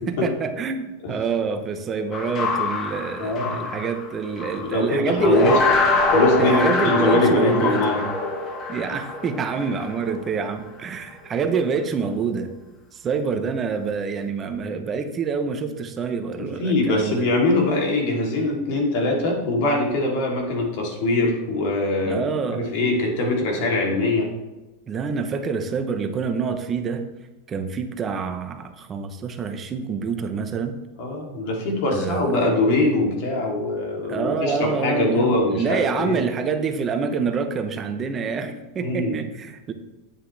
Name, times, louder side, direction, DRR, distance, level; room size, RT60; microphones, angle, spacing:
voice 1, 0.1-5.5 6.4-7.9 8.7-12.5 12.9-17.3 22.0-22.7 24.9-27.0 27.5-30.7 31.9-32.5 34.1-39.7, right 5 dB, 20° right, 6 dB, 0.9 m, -27 dB
sound 1, 2.1-4.8 5.2-10.3, left 3 dB, 30° left, 1.3 m, -23 dB
voice 2, 3.2-3.7 4.6-5.6 6.1-8.0 16.3-22.2 22.5-24.3 31.0-36.2 38.8-39.2, left 2 dB, 60° left, 0 dB, 3.1 m, -22 dB
9.4 x 8.9 x 3.4 m, 1.1 s
supercardioid pair, 150°, 0 cm